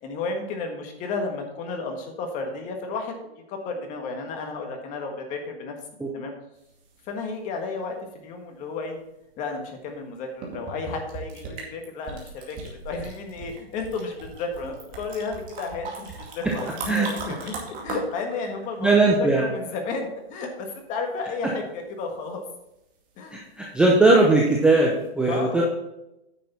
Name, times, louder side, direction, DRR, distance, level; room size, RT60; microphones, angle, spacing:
voice 1, 0.0-5.8 6.1-6.3 7.1-8.0 8.2-9.0 9.4-22.4 23.2-23.4 25.3-25.6, left 4 dB, 25° left, 4 dB, 1.5 m, -32 dB
sound 1, 6.6-7.6 9.9-10.0 10.4-19.5 24.5-24.6 25.0-25.1, right 4 dB, 25° right, 2.3 m, -38 dB
voice 2, 18.8-19.4 23.3-25.6, right 2 dB, 5° right, -2 dB, 0.6 m, -19 dB
9.6 x 6.7 x 4.2 m, 0.87 s
hypercardioid pair, 140°, 32 cm